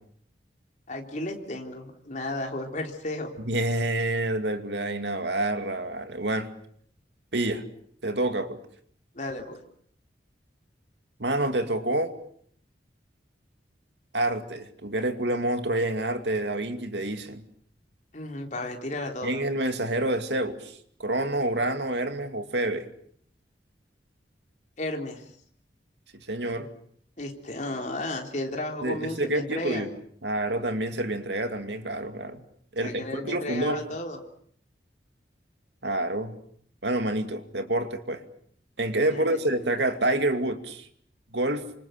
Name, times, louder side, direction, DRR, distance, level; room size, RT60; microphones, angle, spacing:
voice 1, 0.9-3.3 9.1-9.6 18.1-19.4 24.8-25.2 27.2-29.9 32.8-34.2 39.1-39.4, left 1 dB, 45° left, 2 dB, 3.7 m, -34 dB
voice 2, 3.4-6.5 7.3-7.6 8.0-8.6 11.2-12.1 14.1-17.4 19.2-22.9 26.3-26.7 28.8-29.9 30.2-32.4 32.7-33.8 35.8-36.3 36.8-38.2 38.8-40.9 41.3-41.7, right 1 dB, 75° right, 8 dB, 2.4 m, -28 dB
28.0 x 26.0 x 6.7 m, 0.64 s
head